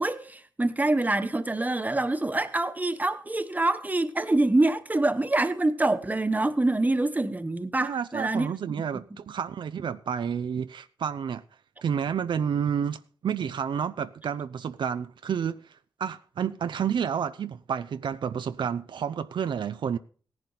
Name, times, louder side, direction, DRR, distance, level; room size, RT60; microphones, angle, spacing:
voice 1, 0.0-8.5, right 2 dB, 20° right, 1.1 m, -25 dB
voice 2, 7.8-11.4 11.8-20.0, right 7 dB, 75° right, 0.5 m, -30 dB
16.5 x 10.5 x 4.0 m
cardioid pair, 80°, 8 cm